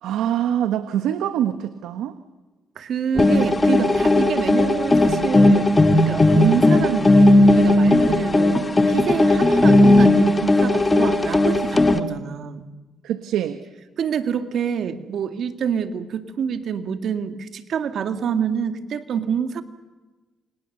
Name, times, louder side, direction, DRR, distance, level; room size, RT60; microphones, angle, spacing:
voice 1, 0.0-2.2 6.3-6.5 13.0-13.6, right 10 dB, 85° right, 10 dB, 1.2 m, -24 dB
voice 2, 2.8-5.7 6.0-12.7 14.0-19.6, right 7 dB, 65° right, 8 dB, 2.1 m, -26 dB
sound 1, 3.2-12.0, left 2 dB, 20° left, 1.8 m, -16 dB
28.5 x 26.0 x 6.8 m, 1.2 s
cardioid pair, 90°, 0 cm